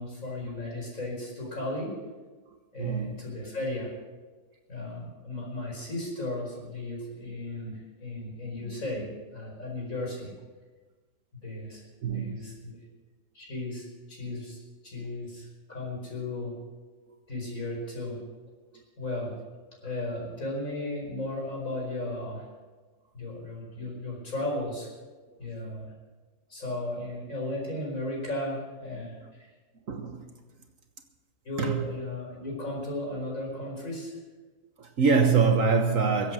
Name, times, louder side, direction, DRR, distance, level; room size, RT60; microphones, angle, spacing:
voice 1, 0.0-1.9 2.7-3.9 4.7-10.3 11.4-11.8 12.1-12.8 13.3-16.5 17.3-18.2 19.0-19.3 19.8-22.5 23.1-24.9 25.4-25.9 26.5-29.5 31.4-34.2, left 1 dB, 55° left, 5.3 m, -35 dB
voice 2, 2.8-3.2 12.0-12.5 18.7-18.8 29.9-30.3 31.6-31.9 34.8-36.3, right 5 dB, 55° right, 1.4 m, -25 dB
23.0 x 8.0 x 6.2 m
omnidirectional pair, 1.7 m